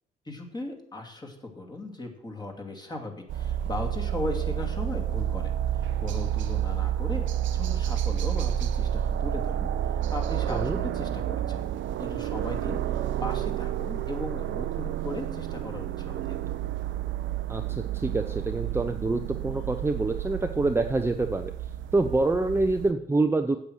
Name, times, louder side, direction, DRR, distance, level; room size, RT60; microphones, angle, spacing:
voice 1, 0.3-7.3 7.5-11.6 12.0-16.4, left 2 dB, 20° left, 2 dB, 2.5 m, -37 dB
sound 1, 3.3-22.9, right 10 dB, 75° right, 0.7 m, -30 dB
voice 2, 17.5-21.5 21.9-23.6, right 2 dB, 10° right, 6 dB, 0.7 m, -26 dB
8.5 x 8.1 x 6.3 m, 0.71 s
cardioid pair, 90°, 20 cm